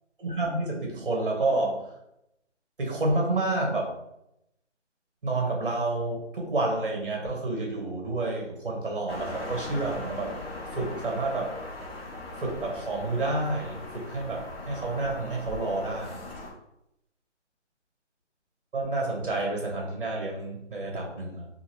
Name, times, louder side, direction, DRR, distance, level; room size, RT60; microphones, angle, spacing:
voice 1, 0.2-1.9 2.8-3.9 5.2-10.3 10.7-11.6 12.4-16.2 18.7-21.5, right 2 dB, 45° right, 0 dB, 1.0 m, -29 dB
sound 1, 9.1-16.5, left 2 dB, 55° left, 1.0 m, -39 dB
2.7 x 2.6 x 2.9 m, 0.81 s
hypercardioid pair, 175°, 36 cm